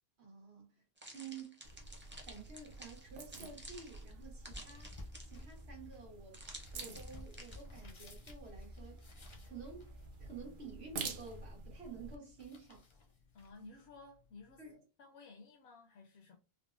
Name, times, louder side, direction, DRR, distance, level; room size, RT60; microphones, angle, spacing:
voice 1, 0.2-0.8 1.1-1.7 2.2-6.4 6.7-9.0 9.4-9.9 10.2-12.9 14.6-14.8, right 5 dB, 85° right, 1.4 m, -51 dB
sound 1, 1.0-5.6 6.3-7.6, right 1 dB, 15° right, 0.4 m, -52 dB
sound 2, 1.6-12.2, right 3 dB, 60° right, 0.7 m, -49 dB
sound 3, 3.7-14.7, left 2 dB, 40° left, 0.4 m, -57 dB
voice 2, 13.3-14.6 15.0-16.4, left 3 dB, 80° left, 0.8 m, -55 dB
3.5 x 2.0 x 2.4 m
omnidirectional pair, 1.1 m